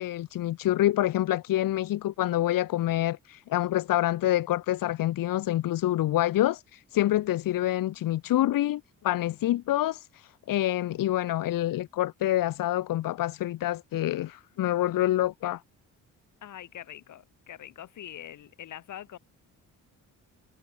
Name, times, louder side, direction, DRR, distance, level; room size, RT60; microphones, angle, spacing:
voice 1, 0.0-15.6, left 14 dB, 85° left, 2.3 m, -27 dB
voice 2, 16.4-19.2, left 11 dB, 65° left, 6.1 m, -43 dB
cardioid pair, 165°, 32 cm